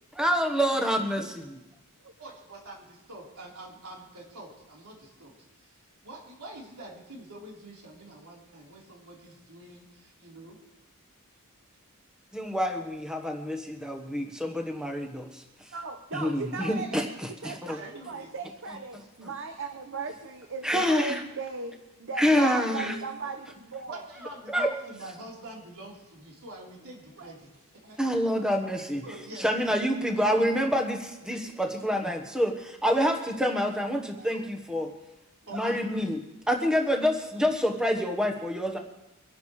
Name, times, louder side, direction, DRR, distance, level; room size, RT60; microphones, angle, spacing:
voice 1, 0.2-1.6 12.3-15.4 16.1-17.8 20.6-21.2 22.2-22.9 24.5-24.7 28.0-29.0 29.4-34.9 35.5-36.2 36.5-38.8, equal, 5° right, 2 dB, 1.2 m, -27 dB
voice 2, 2.2-10.6 17.8-18.3 22.4-23.0 23.9-28.2 28.5-28.6 29.0-29.5 30.1-30.5 35.5-36.1, right 1 dB, 80° right, -3 dB, 3.9 m, -45 dB
voice 3, 15.7-24.0 27.2-27.3 31.3-31.5 34.2-34.4 35.5-35.8, right 4 dB, 60° right, 4 dB, 1.0 m, -38 dB
24.5 x 11.5 x 3.2 m, 0.96 s
head